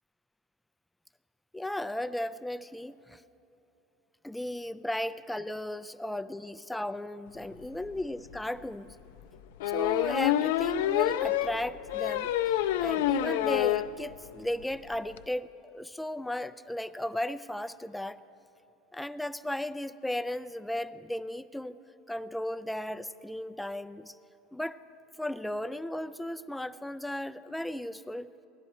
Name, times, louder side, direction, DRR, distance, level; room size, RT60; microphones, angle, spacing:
voice 1, 1.5-3.2 4.2-9.0 9.7-18.2 18.9-21.8 22.1-24.2 24.5-24.8 25.2-28.3, left 1 dB, 5° left, 14 dB, 0.3 m, -35 dB
sound 1, 7.8-7.9 8.3-8.4 9.6-13.9 14.3-14.4 14.6-14.7 14.9-15.2, left 13 dB, 85° left, 0.4 m, -27 dB
17.5 x 11.5 x 4.3 m, 2.9 s
supercardioid pair, 130°, 0 cm